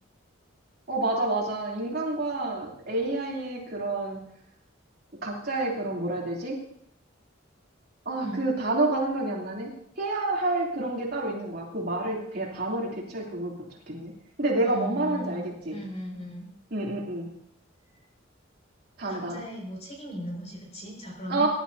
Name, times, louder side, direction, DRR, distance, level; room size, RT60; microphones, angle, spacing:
voice 1, 0.9-4.2 5.2-6.6 8.0-9.7 10.0-13.5 13.9-14.1 14.4-15.8 16.7-17.3 19.0-19.4 21.3-21.5, right 2 dB, 50° right, -3 dB, 3.2 m, -29 dB
voice 2, 14.6-16.5 19.1-21.5, equal, 35° left, -1 dB, 5.7 m, -38 dB
21.5 x 12.0 x 2.8 m, 0.70 s
head